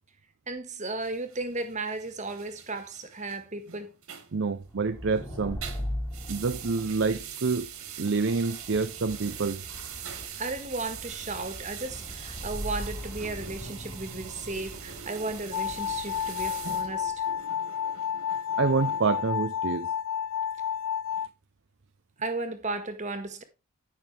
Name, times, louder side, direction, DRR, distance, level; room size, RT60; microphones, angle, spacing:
voice 1, 0.5-3.9 10.4-17.2 22.2-23.4, right 3 dB, 35° right, 1.7 m, -35 dB
sound 1, 1.0-5.2 5.5-19.3, right 8 dB, 80° right, 2.2 m, -43 dB
voice 2, 4.3-5.6 6.3-7.7 8.0-9.6 18.6-19.9, right 4 dB, 55° right, 0.6 m, -27 dB
sound 2, 4.6-17.2, equal, 20° left, 3.8 m, -40 dB
sound 3, 15.5-21.3, left 8 dB, 85° left, 0.5 m, -31 dB
15.0 x 6.1 x 3.4 m
head